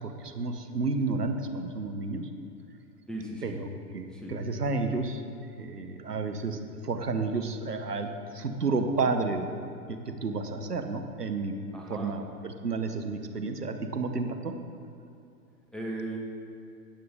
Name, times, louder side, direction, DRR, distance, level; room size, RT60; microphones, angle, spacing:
voice 1, 0.0-2.3 3.4-3.7 3.9-5.2 5.6-9.6 9.9-11.5 11.9-14.5, right 3 dB, 85° right, 6 dB, 1.0 m, -31 dB
voice 2, 3.1-3.6 4.1-4.3 11.7-12.1 15.7-16.2, right 1 dB, ahead, -1 dB, 1.3 m, -37 dB
17.0 x 7.7 x 3.5 m, 2.5 s
figure-of-eight pair, 100°, 46 cm